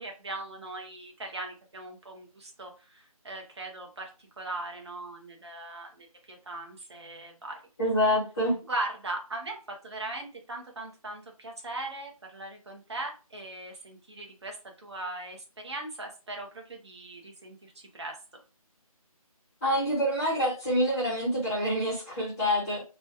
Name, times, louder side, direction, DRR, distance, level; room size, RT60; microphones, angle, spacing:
voice 1, 0.0-7.6 8.7-18.2, right 2 dB, 45° right, 1 dB, 0.9 m, -39 dB
voice 2, 7.8-8.6 19.6-22.8, equal, 10° left, -9 dB, 0.7 m, -26 dB
3.1 x 2.2 x 2.8 m, 0.33 s
figure-of-eight pair, 170°, 19 cm